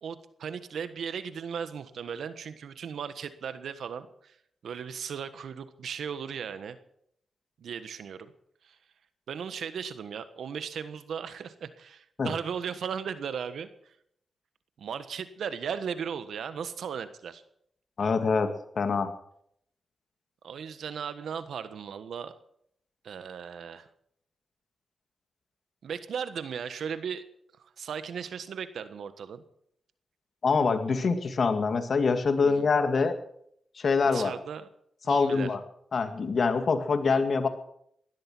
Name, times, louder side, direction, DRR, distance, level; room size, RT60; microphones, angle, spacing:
voice 1, 0.0-4.4 4.6-6.8 7.6-8.3 8.6-8.8 9.3-13.9 14.8-17.4 20.4-22.3 23.0-23.9 25.8-27.2 27.6-29.4 32.4-32.7 34.1-34.7 35.0-35.5, right 7 dB, 85° right, 12 dB, 1.3 m, -36 dB
voice 2, 18.0-19.1 30.4-33.1 33.7-34.3 35.1-35.6 35.9-37.5, left 4 dB, 60° left, 8 dB, 2.1 m, -25 dB
18.0 x 12.5 x 6.2 m, 0.71 s
cardioid pair, 65°, 0 cm